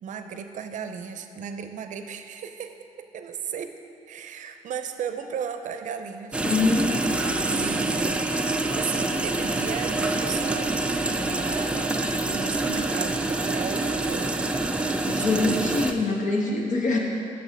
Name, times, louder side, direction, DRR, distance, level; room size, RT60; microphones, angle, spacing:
voice 1, 0.0-3.8 4.1-6.4 7.4-8.3 8.6-10.8 11.1-12.0 12.3-14.4 15.2-15.7, right 7 dB, 65° right, 8 dB, 0.5 m, -35 dB
sound 1, 6.3-15.9, right 2 dB, 10° right, 0.3 m, -26 dB
voice 2, 6.4-7.0 15.1-17.0, left 3 dB, 60° left, 0 dB, 1.3 m, -24 dB
6.7 x 6.3 x 6.5 m, 2.6 s
wide cardioid pair, 175°, 14 cm